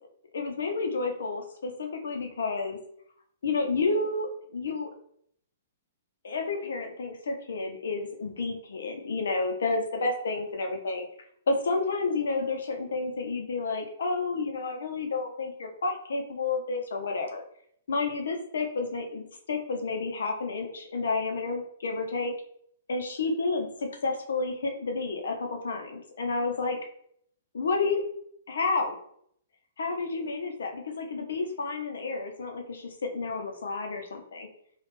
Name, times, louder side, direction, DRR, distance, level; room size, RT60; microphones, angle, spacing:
voice 1, 0.3-2.8 3.4-4.9 6.2-11.1 11.5-17.4 17.9-19.2 19.5-22.3 22.9-23.7 24.0-26.8 27.5-28.0 28.5-28.9 29.8-34.5, left 3 dB, 85° left, 3 dB, 0.7 m, -30 dB
3.3 x 2.4 x 3.2 m, 0.67 s
hypercardioid pair, 180°, 0 cm